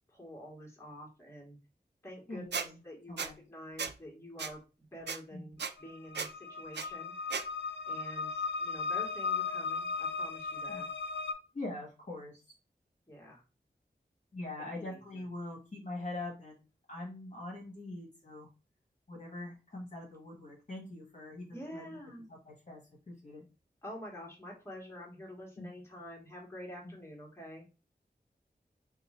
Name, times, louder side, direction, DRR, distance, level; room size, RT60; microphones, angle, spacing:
voice 1, 0.1-1.6 2.0-7.1 7.9-10.9 13.1-13.4 14.6-15.2 21.5-22.3 23.8-27.6, equal, 15° left, -3 dB, 1.7 m, -48 dB
voice 2, 2.3-2.8 3.1-3.4 5.3-5.5 10.7-10.9 11.5-12.4 14.3-18.5 19.1-22.0 22.3-22.8 23.1-23.4 25.6-25.7 26.8-26.9, left 2 dB, 45° left, -2 dB, 1.4 m, -43 dB
Squeak, 2.5-2.7 3.2-3.3 3.8-3.9 4.4-4.5 5.1-5.2 5.6-5.7 6.2-6.3 6.7-6.9 7.3-7.4, right 5 dB, 75° right, 0.4 m, -35 dB
sound 1, 5.6-11.3, left 5 dB, 90° left, 0.5 m, -36 dB
2.9 x 2.5 x 4.1 m, 0.31 s
wide cardioid pair, 60°, 18 cm